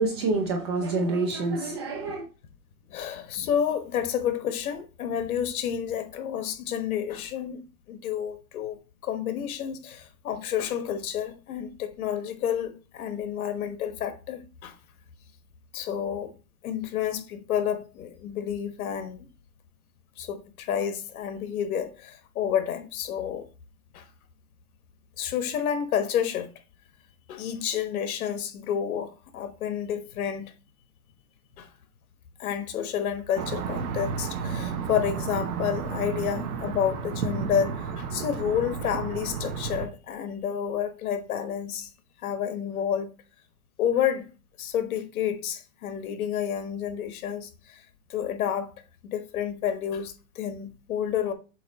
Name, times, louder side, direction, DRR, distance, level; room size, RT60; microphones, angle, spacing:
voice 1, 0.0-2.2, right 3 dB, 20° right, 0.3 m, -27 dB
voice 2, 2.9-7.6 7.9-14.8 15.7-16.3 16.6-19.3 20.2-23.5 23.9-24.0 25.2-26.5 27.3-30.5 31.6-31.7 32.4-41.9 42.2-43.1 43.8-44.3 44.6-47.8 48.1-48.7 49.0-51.3, left 9 dB, 70° left, 1.2 m, -30 dB
sound 1, 33.4-39.9, right 6 dB, 75° right, 1.2 m, -32 dB
7.8 x 3.1 x 4.0 m
hypercardioid pair, 145°, 44 cm